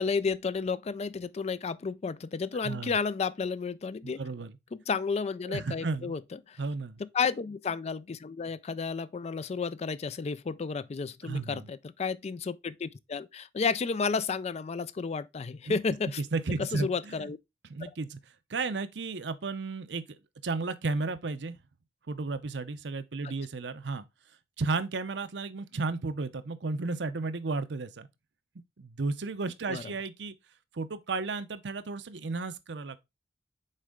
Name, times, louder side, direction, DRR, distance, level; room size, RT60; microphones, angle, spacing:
voice 1, 0.0-4.2 4.9-6.2 6.5-6.6 7.1-16.2 16.6-17.4 17.8-17.9 29.7-29.8, left 5 dB, 40° left, 0.4 m, -32 dB
voice 2, 2.6-3.0 4.0-4.5 5.5-6.1 6.6-7.0 11.2-11.7 15.7-15.8 16.2-17.3 17.7-18.2 18.5-21.6 22.1-24.0 24.6-28.1 28.5-30.3 30.7-33.0, right 3 dB, 80° right, 0.7 m, -33 dB
6.5 x 4.4 x 3.6 m
head